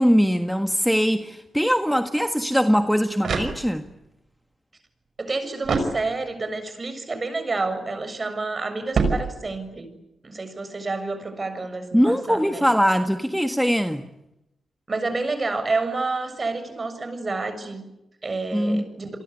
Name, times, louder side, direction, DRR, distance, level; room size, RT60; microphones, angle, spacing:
voice 1, 0.0-3.9 11.9-14.0 18.5-18.8, equal, ahead, 1.6 m, -21 dB
sound 1, 3.1-4.1 5.6-6.5 8.9-9.8, right 4 dB, 65° right, 5.6 m, -27 dB
voice 2, 5.2-9.9 10.2-12.6 14.9-17.9 18.2-19.1, right 3 dB, 35° right, 6.8 m, -29 dB
29.0 x 23.5 x 8.4 m
cardioid pair, 70°, 0 cm